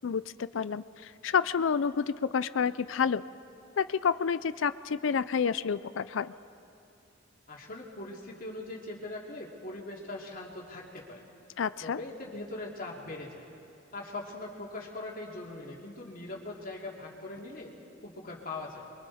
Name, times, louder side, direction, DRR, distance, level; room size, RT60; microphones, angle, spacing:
voice 1, 0.0-3.2 3.8-6.3 11.6-12.0, left 6 dB, 85° left, 15 dB, 0.5 m, -29 dB
voice 2, 7.5-11.2 11.8-13.5 13.9-17.7 18.0-18.8, left 2 dB, 50° left, -2 dB, 2.8 m, -41 dB
29.0 x 23.0 x 4.3 m, 2.6 s
head